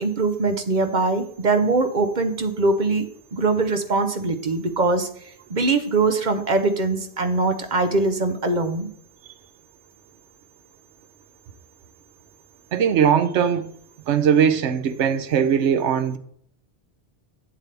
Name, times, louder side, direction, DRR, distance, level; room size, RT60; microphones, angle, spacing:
voice 1, 0.0-3.1 3.3-5.1 5.5-8.9, right 3 dB, 45° right, 1.0 m, -22 dB
voice 2, 12.7-13.7 14.1-16.2, right 8 dB, 85° right, 1.0 m, -20 dB
8.2 x 7.6 x 3.4 m
omnidirectional pair, 1.1 m